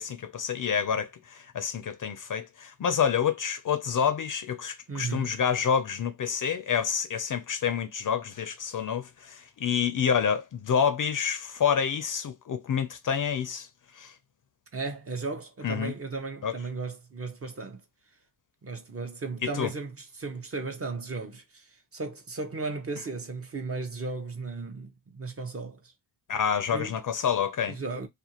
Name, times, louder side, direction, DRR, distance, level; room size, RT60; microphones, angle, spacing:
voice 1, 0.0-13.7 14.0-14.1 15.6-15.9 16.4-16.5 19.6-19.7 26.3-27.8, left 7 dB, 45° left, 0.5 m, -28 dB
voice 2, 4.9-5.3 14.7-17.8 18.6-25.8 26.7-26.9 27.7-28.1, right 3 dB, 30° right, 0.6 m, -35 dB
2.5 x 2.3 x 2.8 m
cardioid pair, 90°, 45 cm